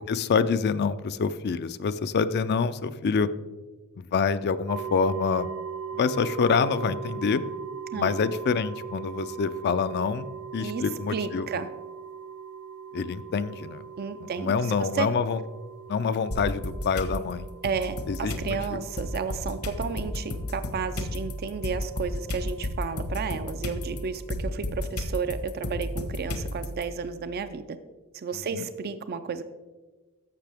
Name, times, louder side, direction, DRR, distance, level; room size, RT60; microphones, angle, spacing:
voice 1, 0.1-3.3 4.0-5.5 5.9-7.4 7.9-10.3 10.5-11.5 12.9-13.8 14.4-15.4 15.9-17.5 18.1-18.8 28.5-28.7, left 5 dB, 50° left, 13 dB, 0.4 m, -26 dB
sound 1, 4.7-24.3, right 6 dB, 85° right, 0.9 m, -41 dB
voice 2, 11.1-11.7 14.0-15.1 17.6-27.8 28.1-29.4, right 5 dB, 45° right, 11 dB, 0.4 m, -32 dB
sound 2, 16.3-17.2 17.6-26.8, left 1 dB, 75° left, 1.2 m, -33 dB
11.5 x 7.4 x 3.5 m, 1.3 s
head